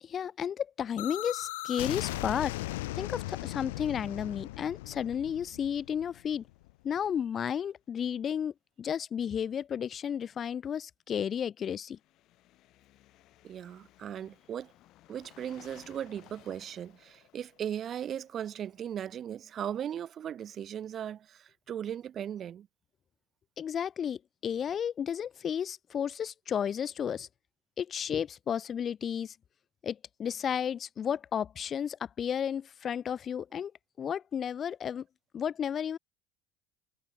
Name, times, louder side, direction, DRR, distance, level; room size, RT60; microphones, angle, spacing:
voice 1, 0.0-2.5 2.9-6.4 6.8-8.5 8.8-12.0 23.6-27.3 27.8-29.3 29.8-33.7 34.0-35.0 35.3-36.0, left 8 dB, 40° left, 1.0 m, -33 dB
sound 1, 1.0-6.7, left 19 dB, 80° left, 1.2 m, -38 dB
sound 2, 3.8-7.7 11.8-19.5, left 15 dB, 55° left, 6.4 m, -61 dB
voice 2, 13.4-14.7 15.1-22.7, right 9 dB, 40° right, 1.1 m, -38 dB
hypercardioid pair, 85°, 0 cm